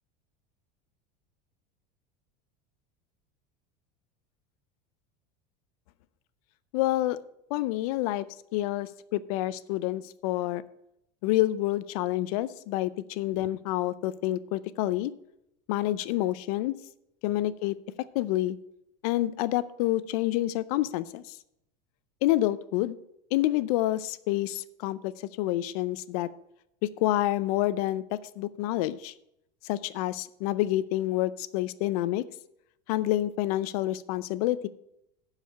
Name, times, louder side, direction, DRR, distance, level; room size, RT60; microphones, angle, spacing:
voice 1, 6.7-7.2 7.5-8.2 8.5-10.6 11.2-15.1 15.7-16.8 17.2-17.7 18.1-18.6 19.0-21.4 22.2-23.0 23.3-25.1 25.4-26.3 27.0-29.1 29.6-32.2 32.9-34.7, left 15 dB, 60° left, 16 dB, 0.6 m, -28 dB
11.0 x 4.9 x 6.7 m, 0.79 s
supercardioid pair, 170°, 21 cm